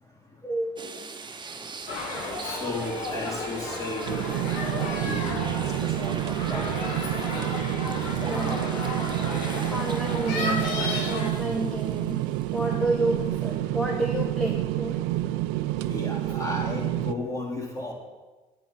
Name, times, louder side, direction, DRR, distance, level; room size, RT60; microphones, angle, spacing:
voice 1, 0.4-0.7 8.2-8.6 9.3-12.3 12.5-15.0, right 2 dB, 5° left, -1 dB, 1.4 m, -30 dB
sound 1, 0.8-13.0 13.4-13.5 15.8-16.0, right 4 dB, 30° right, 1.1 m, -41 dB
sound 2, 1.9-11.3, left 3 dB, 85° left, 1.7 m, -33 dB
voice 2, 2.4-4.2 4.5-7.1 15.8-17.9, left 2 dB, 20° left, -2 dB, 3.6 m, -35 dB
sound 3, 4.1-17.1, right 15 dB, 85° right, 0.4 m, -29 dB
9.5 x 8.4 x 6.0 m, 1.2 s
supercardioid pair, 70°, 16 cm